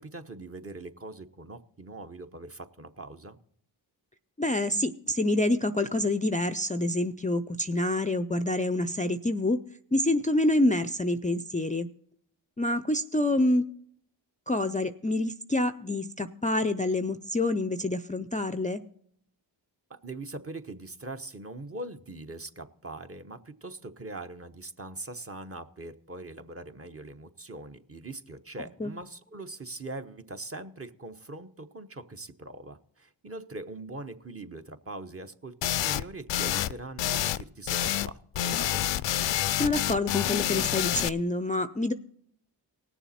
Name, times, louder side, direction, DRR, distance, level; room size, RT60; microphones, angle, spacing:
voice 1, 0.0-3.4 19.9-38.8, right 2 dB, 30° right, 7 dB, 1.0 m, -42 dB
voice 2, 4.4-9.6 9.9-11.9 12.6-13.6 14.5-18.8 28.8-28.9 39.6-41.9, left 1 dB, 15° left, 11 dB, 0.5 m, -27 dB
sound 1, 35.6-36.0 36.3-36.7 37.0-37.4 37.7-38.1 38.4-41.1, left 12 dB, 65° left, 0.5 m, -28 dB
18.5 x 7.0 x 4.3 m, 0.67 s
cardioid pair, 45°, 48 cm